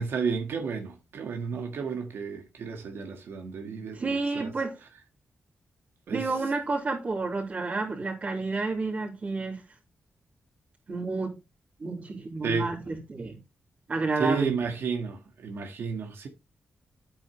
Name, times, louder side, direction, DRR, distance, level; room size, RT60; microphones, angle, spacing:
voice 1, 0.0-4.5 6.1-6.3 12.4-12.7 14.2-16.3, right 5 dB, 85° right, 1.6 m, -32 dB
voice 2, 3.9-4.7 6.1-9.6 10.9-11.3 11.8-13.4 13.9-14.5, right 3 dB, 40° right, 3.3 m, -30 dB
10.0 x 8.5 x 3.1 m
wide cardioid pair, 125°, 4 cm